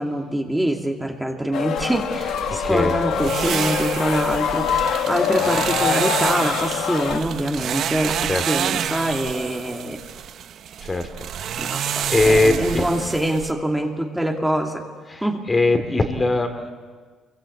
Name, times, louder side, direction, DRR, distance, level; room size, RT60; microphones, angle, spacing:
voice 1, 0.0-10.0 11.6-14.8 15.2-15.5, right 1 dB, 5° right, 2 dB, 2.3 m, -25 dB
sound 1, 1.5-7.2, left 9 dB, 70° left, 1.5 m, -24 dB
sound 2, 1.8-13.5, right 9 dB, 65° right, 1.0 m, -29 dB
voice 2, 2.5-3.0 8.3-8.4 10.8-11.1 11.5-12.9 15.1-15.2 15.5-16.7, left 2 dB, 20° left, 7 dB, 2.6 m, -21 dB
27.0 x 23.0 x 8.4 m, 1.5 s
cardioid pair, 110°, 0 cm